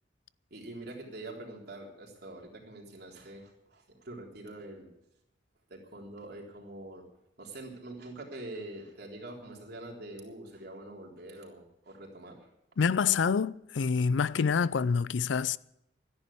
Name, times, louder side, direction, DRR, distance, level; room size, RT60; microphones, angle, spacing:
voice 1, 0.5-4.9 5.7-7.0 7.4-12.5, right 2 dB, 60° right, 3.7 m, -45 dB
voice 2, 12.8-15.6, left 6 dB, 75° left, 0.4 m, -27 dB
13.5 x 10.5 x 8.5 m
head